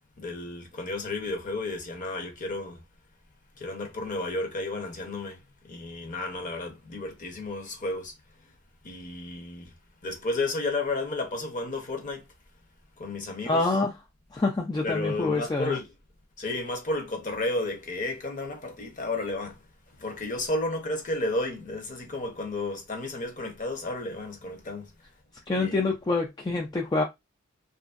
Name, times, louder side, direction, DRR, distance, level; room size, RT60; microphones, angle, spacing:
voice 1, 0.2-2.8 3.6-8.1 8.8-9.7 10.0-12.2 13.0-13.6 14.8-15.9 16.4-19.6 20.0-24.9 25.5-25.9, left 2 dB, 40° left, 0.8 m, -32 dB
voice 2, 13.5-13.9 14.3-15.8 25.5-27.0, left 3 dB, 20° left, 0.4 m, -26 dB
2.9 x 2.5 x 2.4 m
head